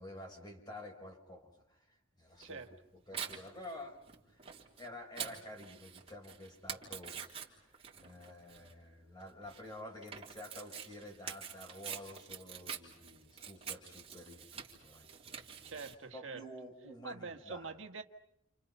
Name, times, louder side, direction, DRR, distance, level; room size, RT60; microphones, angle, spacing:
voice 1, 0.0-4.0 4.3-15.9 16.1-17.7, left 1 dB, 20° left, 2 dB, 5.7 m, -50 dB
Tearing, 2.4-15.9, right 7 dB, 30° right, 3.5 m, -47 dB
voice 2, 15.6-16.4 17.0-18.0, right 4 dB, 70° right, 4 dB, 1.7 m, -45 dB
29.5 x 29.5 x 5.7 m, 0.76 s
head